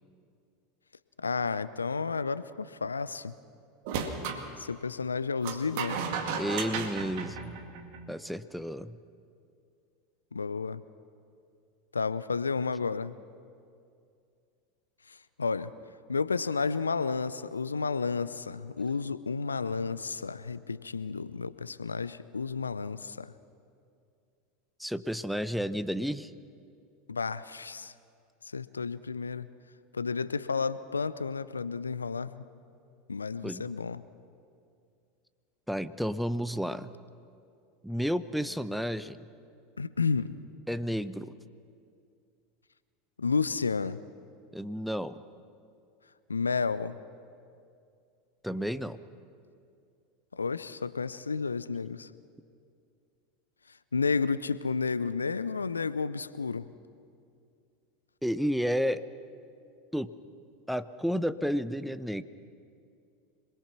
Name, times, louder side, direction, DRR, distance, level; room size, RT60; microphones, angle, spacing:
voice 1, 1.2-3.3 4.6-6.0 10.3-10.8 11.9-13.1 15.1-15.7 16.1-23.3 27.1-27.9 28.5-29.5 29.9-32.4 33.1-34.0 39.8-40.4 43.2-44.0 46.3-47.0 50.3-52.1 53.9-56.7, left 5 dB, 85° left, 16 dB, 0.6 m, -31 dB
sound 1, 3.8-4.4 5.4-8.1, right 6 dB, 55° right, 2.0 m, -34 dB
voice 2, 6.4-7.5 8.1-9.0 24.8-26.3 33.4-33.7 35.7-36.9 37.8-39.3 40.7-41.3 44.5-45.2 48.4-49.0 58.2-59.0 59.9-60.1 60.7-62.2, equal, ahead, 13 dB, 0.8 m, -31 dB
26.5 x 21.0 x 6.1 m, 2.4 s
figure-of-eight pair, 80°, 0 cm